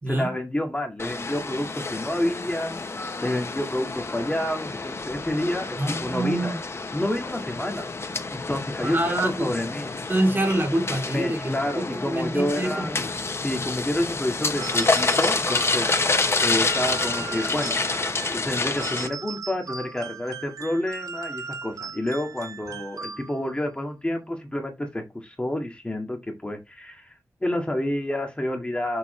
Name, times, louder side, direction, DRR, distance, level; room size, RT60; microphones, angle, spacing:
voice 1, 0.1-2.8 3.2-6.5 6.9-7.8 8.3-9.9 11.1-13.0 13.4-15.9 16.4-17.8 18.3-29.0, left 1 dB, 20° left, 1.8 m, -29 dB
sound 1, 1.0-19.1, left 3 dB, 45° left, 1.0 m, -28 dB
voice 2, 5.8-6.6 8.8-9.5 10.1-12.9, right 1 dB, 35° right, 2.9 m, -26 dB
sound 2, 14.6-23.6, right 5 dB, 65° right, 0.9 m, -38 dB
7.0 x 6.7 x 3.2 m
wide cardioid pair, 100°, 6 cm